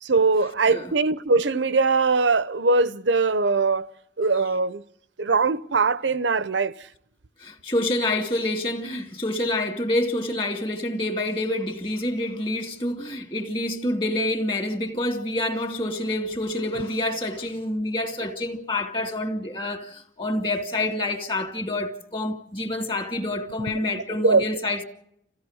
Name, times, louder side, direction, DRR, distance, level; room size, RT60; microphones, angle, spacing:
voice 1, 0.0-3.9 4.2-4.8 5.2-6.8 23.6-24.5, right 3 dB, 80° right, 0.8 m, -22 dB
voice 2, 7.4-24.8, left 1 dB, 30° left, 2.3 m, -27 dB
27.5 x 16.5 x 6.4 m
head